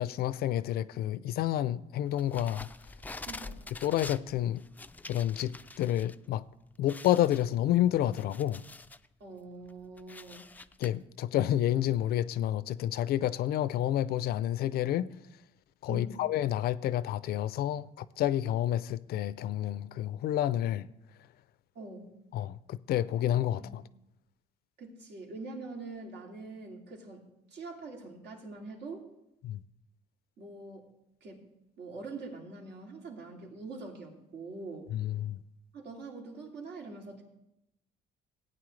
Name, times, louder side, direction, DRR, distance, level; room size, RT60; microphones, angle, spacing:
voice 1, 0.0-2.7 3.8-4.6 5.1-6.4 6.8-8.6 10.8-15.1 15.8-20.9 22.3-23.8 29.4-29.6 34.9-35.4, left 12 dB, 65° left, 0.5 m, -29 dB
sound 1, 2.2-6.1 6.5-6.6 6.9-9.1 9.5-10.9, left 3 dB, 10° left, 0.4 m, -46 dB
voice 2, 3.3-3.6 9.2-10.5 15.9-16.3 21.7-22.2 23.6-23.8 24.8-29.1 30.4-30.9 31.2-31.5 31.8-34.9 35.7-37.2, right 3 dB, 75° right, 2.7 m, -44 dB
16.5 x 9.0 x 3.2 m
cardioid pair, 110°, 17 cm